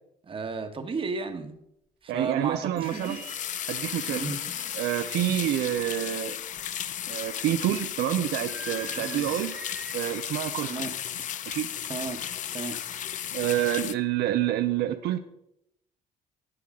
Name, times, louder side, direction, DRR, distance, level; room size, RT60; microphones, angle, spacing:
voice 1, 0.2-1.5 2.0-3.2 4.1-4.4 9.0-9.2 10.7-10.9 11.9-12.2 12.5-12.8, right 4 dB, 30° right, 7 dB, 1.2 m, -33 dB
sound 1, 0.9-1.0 2.2-2.3 2.8-5.0 5.4-5.8 8.5-10.0 10.3-10.7 11.0-11.3, right 2 dB, 5° right, 1.2 m, -45 dB
voice 2, 2.1-3.2 3.7-4.2 4.7-6.3 7.1-9.5 9.9-10.8 11.5-11.7 13.3-15.2, right 12 dB, 75° right, 8 dB, 0.6 m, -28 dB
sound 2, 2.8-13.9, left 10 dB, 50° left, 0.5 m, -35 dB
11.5 x 8.6 x 3.6 m, 0.80 s
cardioid pair, 110°, 17 cm